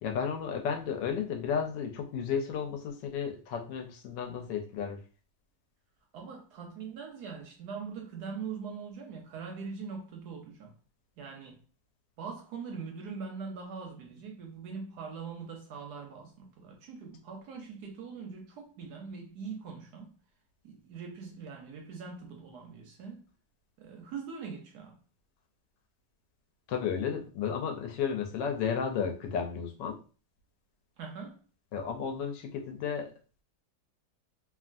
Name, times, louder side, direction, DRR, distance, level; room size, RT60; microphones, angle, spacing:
voice 1, 0.0-5.0 26.7-30.0 31.7-33.1, left 7 dB, 75° left, 1.2 m, -33 dB
voice 2, 6.1-10.8 11.2-11.6 12.2-20.1 20.6-23.2 23.8-25.0 31.0-31.4, right 5 dB, 70° right, 1.0 m, -42 dB
3.0 x 2.4 x 2.5 m
omnidirectional pair, 2.0 m